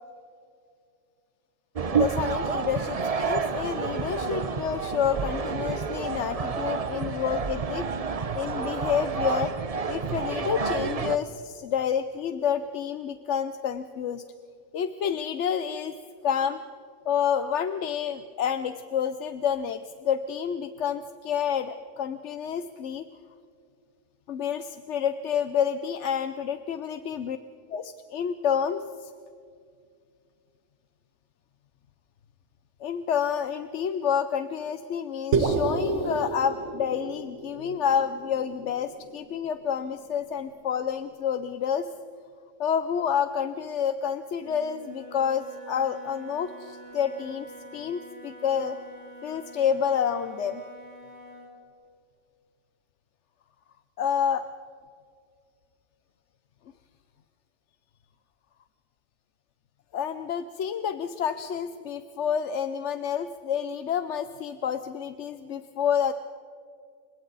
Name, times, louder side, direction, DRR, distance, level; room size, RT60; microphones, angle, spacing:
sound 1, 1.8-11.2, right 5 dB, 35° right, 0.8 m, -29 dB
voice 1, 2.0-7.9 8.3-9.5 9.9-14.2 14.7-15.9 16.2-16.6 17.0-23.1 24.3-27.4 27.7-29.1 32.8-41.9 42.6-48.8 49.2-50.6 54.0-54.5 59.9-66.1, left 8 dB, 75° left, 10 dB, 1.1 m, -29 dB
sound 2, 35.3-39.7, right 4 dB, 75° right, 1.9 m, -30 dB
Wind instrument woodwind instrument, 44.3-51.6, equal, 30° left, 7.3 m, -47 dB
29.5 x 25.0 x 4.1 m, 2.3 s
omnidirectional pair, 1.2 m